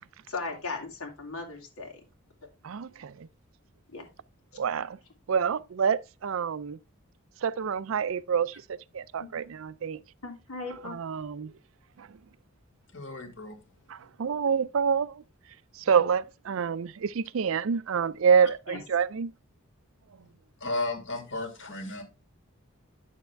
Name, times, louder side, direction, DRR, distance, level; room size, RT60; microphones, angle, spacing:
voice 1, 0.3-1.9 3.9-4.0 10.2-11.0 18.7-18.8, left 3 dB, 90° left, 2.9 m, -37 dB
voice 2, 2.6-3.3 4.5-5.0 5.3-6.8 7.4-10.0 10.7-11.5 12.0-12.2 13.9-15.2 15.7-19.3, right 6 dB, 70° right, 0.4 m, -27 dB
voice 3, 12.9-13.6 20.6-22.0, left 2 dB, 60° left, 2.3 m, -34 dB
8.9 x 7.0 x 3.4 m
head